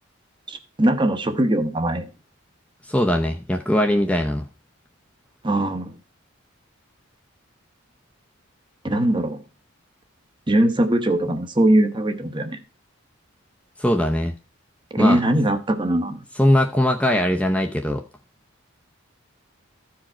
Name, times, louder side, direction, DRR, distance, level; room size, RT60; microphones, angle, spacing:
voice 1, 0.5-2.1 5.4-5.9 8.8-9.4 10.5-12.6 14.9-16.2, right 1 dB, 20° right, 1.0 m, -21 dB
voice 2, 2.9-4.5 13.8-14.3 15.0-15.2 16.4-18.0, left 1 dB, 5° left, 0.6 m, -20 dB
14.0 x 4.8 x 4.4 m
head